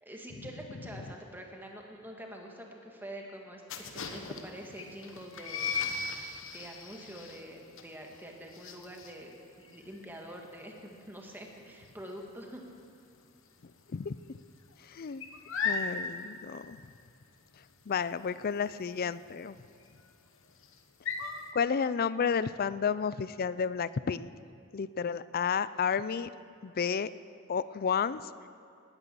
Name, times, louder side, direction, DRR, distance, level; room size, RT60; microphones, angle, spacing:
voice 1, 0.0-3.6 3.9-5.7 6.4-12.6, right 1 dB, 10° right, 1 dB, 1.8 m, -46 dB
sound 1, 3.7-13.2 13.5-13.8 14.1-21.5, left 5 dB, 65° left, 1.2 m, -38 dB
voice 2, 13.9-14.4 14.8-15.2 15.6-16.8 17.9-19.6 21.5-24.3 24.7-26.3 26.6-27.1 27.5-28.2, left 6 dB, 45° left, 16 dB, 0.4 m, -31 dB
19.0 x 9.9 x 7.0 m, 2.4 s
head